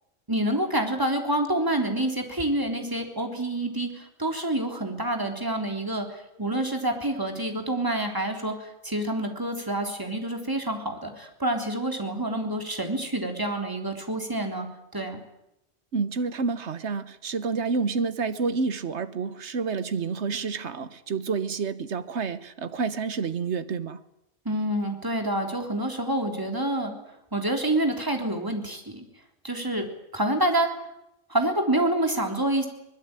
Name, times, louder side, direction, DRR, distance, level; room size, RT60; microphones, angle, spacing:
voice 1, 0.3-14.7 14.9-15.2 24.5-26.9 27.3-29.1 29.4-29.9 30.1-30.7 31.3-32.7, right 1 dB, 15° right, 3.5 m, -27 dB
voice 2, 15.9-24.0, right 5 dB, 70° right, 1.5 m, -29 dB
23.0 x 20.5 x 9.0 m
omnidirectional pair, 1.2 m